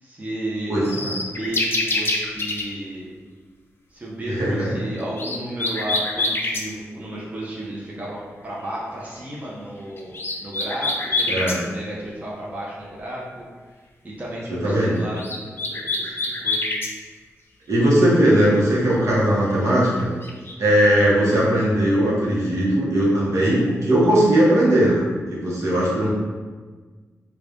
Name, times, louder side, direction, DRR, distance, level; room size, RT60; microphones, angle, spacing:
voice 1, 0.0-3.1 3.9-13.4 14.0-16.7, right 1 dB, 30° right, -6 dB, 0.9 m, -33 dB
voice 2, 0.7-1.1 4.2-4.7 11.3-11.6 14.6-15.0 17.7-20.1 20.6-26.1, right 1 dB, 70° right, -7 dB, 1.1 m, -19 dB
sound 1, 0.8-2.6 5.0-6.7 10.0-11.6 15.0-16.9 20.0-20.5, left 2 dB, 45° left, 0.5 m, -25 dB
3.2 x 2.4 x 3.6 m, 1.4 s
cardioid pair, 70°, 5 cm